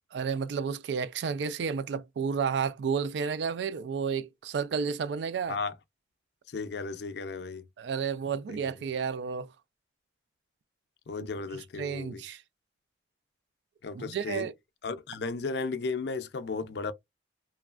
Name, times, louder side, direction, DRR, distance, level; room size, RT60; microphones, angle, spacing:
voice 1, 0.1-5.6 7.8-9.5 11.8-12.4 13.9-14.5, right 6 dB, 75° right, 0.3 m, -31 dB
voice 2, 6.5-7.6 8.5-8.8 11.1-12.2 13.8-14.5 14.8-16.9, left 4 dB, 65° left, 0.4 m, -35 dB
3.1 x 2.3 x 2.3 m
head